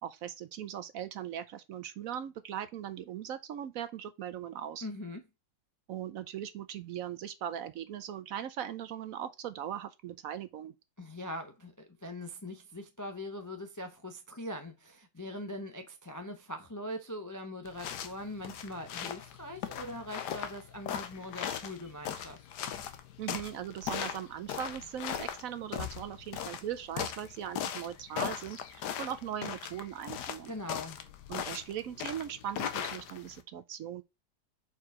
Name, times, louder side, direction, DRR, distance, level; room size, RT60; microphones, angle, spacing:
voice 1, 0.0-4.9 5.9-10.7 23.2-30.5 31.3-34.0, right 10 dB, 70° right, 0.9 m, -39 dB
voice 2, 4.8-5.2 11.0-22.4 30.5-31.0, left 1 dB, 30° left, 0.3 m, -42 dB
sound 1, 17.6-33.4, left 9 dB, 85° left, 1.4 m, -39 dB
4.8 x 4.6 x 4.8 m
omnidirectional pair, 1.8 m